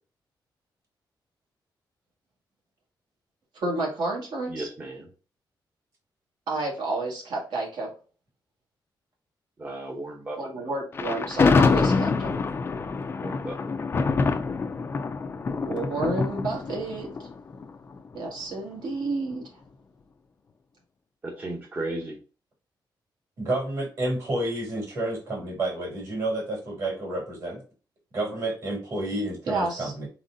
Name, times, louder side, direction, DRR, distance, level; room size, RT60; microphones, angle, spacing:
voice 1, 3.5-4.7 6.5-7.9 10.4-12.3 15.7-17.1 18.1-19.5 29.5-29.9, right 2 dB, 70° right, -1 dB, 1.6 m, -30 dB
voice 2, 4.5-5.1 9.6-10.4 13.2-13.6 21.4-22.2, right 2 dB, 25° right, -1 dB, 0.8 m, -34 dB
Thunder, 10.9-18.1, left 4 dB, 30° left, 0.4 m, -25 dB
voice 3, 23.4-27.6 28.1-30.1, right 1 dB, 45° right, -1 dB, 2.3 m, -30 dB
4.2 x 4.0 x 2.6 m, 0.36 s
wide cardioid pair, 175°, 8 cm